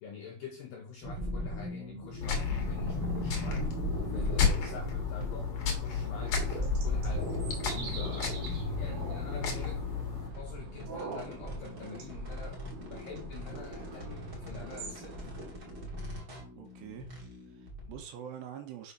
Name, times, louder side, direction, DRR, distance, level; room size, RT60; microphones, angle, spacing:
voice 1, 0.0-3.7 4.1-7.4 7.9-9.8 10.4-15.3, left 5 dB, 85° left, 2.0 m, -46 dB
sound 1, 1.0-18.0, equal, 35° right, 1.7 m, -38 dB
sound 2, 2.2-10.3, left 6 dB, 70° left, 1.3 m, -33 dB
sound 3, 5.9-15.5, right 5 dB, 55° right, 2.7 m, -46 dB
voice 2, 16.6-17.1 17.5-18.9, right 9 dB, 75° right, 3.0 m, -45 dB
7.0 x 4.9 x 5.6 m
omnidirectional pair, 5.5 m